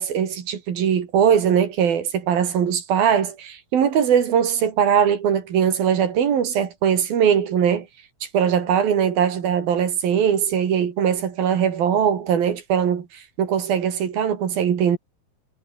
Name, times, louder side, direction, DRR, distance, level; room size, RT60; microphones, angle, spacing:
voice 1, 0.0-7.9 8.3-15.0, right 8 dB, 60° right, 4.1 m, -20 dB
omnidirectional pair, 5.0 m